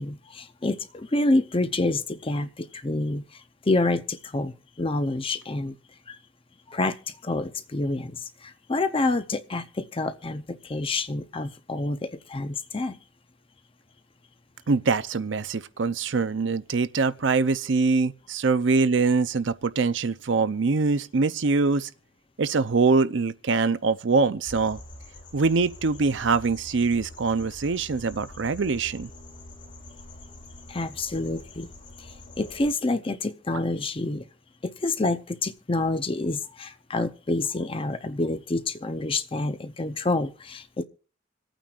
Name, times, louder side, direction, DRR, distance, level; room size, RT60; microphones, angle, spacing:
voice 1, 0.0-5.7 6.1-6.2 6.7-13.0 30.7-31.7 32.0-34.3 34.6-40.8, left 2 dB, 30° left, 0.6 m, -28 dB
voice 2, 14.7-21.9 22.4-24.8 25.3-29.1, right 4 dB, 65° right, 0.6 m, -23 dB
sound 1, 24.5-32.7, left 2 dB, 45° left, 2.9 m, -45 dB
26.5 x 9.0 x 2.4 m
head